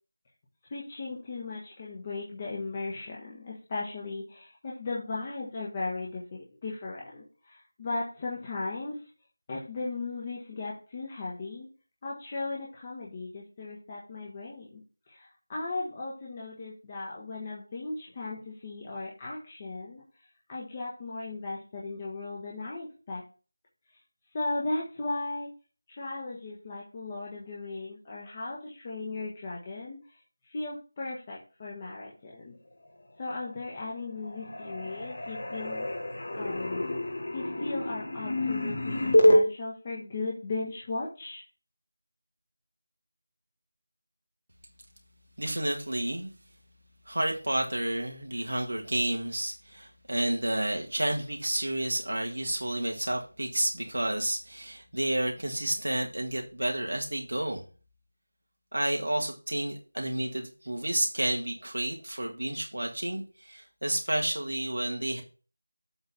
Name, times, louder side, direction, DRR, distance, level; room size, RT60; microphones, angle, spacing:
voice 1, 0.7-9.1 9.5-11.7 12.0-14.8 15.1-20.0 20.5-23.2 24.3-25.5 25.9-30.2 30.4-32.6 33.2-35.9 36.3-36.9 37.3-41.4, left 3 dB, 25° left, -4 dB, 1.3 m, -37 dB
sound 1, 33.4-34.0 34.2-39.4, left 1 dB, 55° left, 2.0 m, -27 dB
voice 2, 45.4-46.3 47.0-57.6 58.7-65.2, right 1 dB, 80° right, 1 dB, 1.7 m, -30 dB
7.9 x 3.9 x 5.5 m, 0.37 s
figure-of-eight pair, 170°, 0 cm